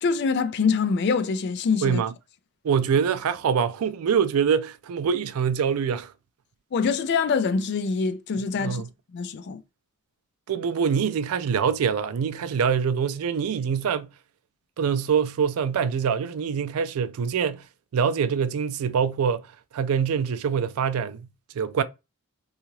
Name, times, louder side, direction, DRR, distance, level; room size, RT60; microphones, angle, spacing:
voice 1, 0.0-2.0 6.7-8.8 9.1-9.6, left 5 dB, 50° left, 0.3 m, -24 dB
voice 2, 1.8-2.1 2.6-6.1 8.4-8.9 10.5-14.1 14.8-17.6 17.9-19.5 19.7-21.3 21.5-21.8, right 7 dB, 85° right, 0.4 m, -24 dB
2.8 x 2.4 x 3.0 m
head